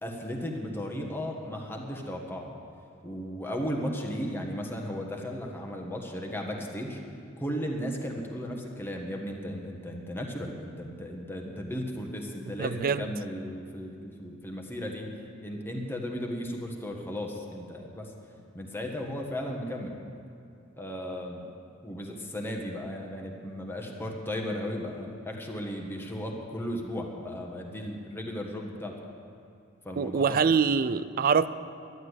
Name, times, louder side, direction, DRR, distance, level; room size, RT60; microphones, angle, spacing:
voice 1, 0.0-2.5 3.0-7.0 7.4-15.1 15.4-18.1 18.5-20.0 20.8-21.5 21.8-28.9 29.8-30.4, equal, 10° left, 1.4 m, -35 dB
voice 2, 12.6-13.1 30.0-31.5, right 6 dB, 45° right, 0.4 m, -24 dB
11.5 x 11.0 x 8.2 m
head